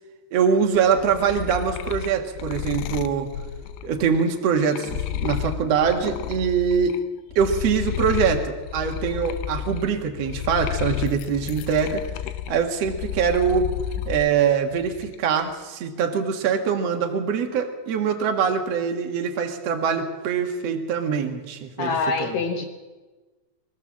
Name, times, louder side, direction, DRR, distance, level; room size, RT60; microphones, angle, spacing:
voice 1, 0.3-3.3 3.8-7.0 7.3-12.0 12.5-13.7 14.0-22.4, right 6 dB, 65° right, 4 dB, 1.6 m, -23 dB
sound 1, 0.8-7.0 7.3-14.3 14.7-15.4, left 11 dB, 90° left, 3.3 m, -32 dB
voice 2, 21.8-22.7, left 4 dB, 70° left, 1 dB, 2.9 m, -25 dB
22.5 x 16.0 x 7.4 m, 1.2 s
omnidirectional pair, 5.5 m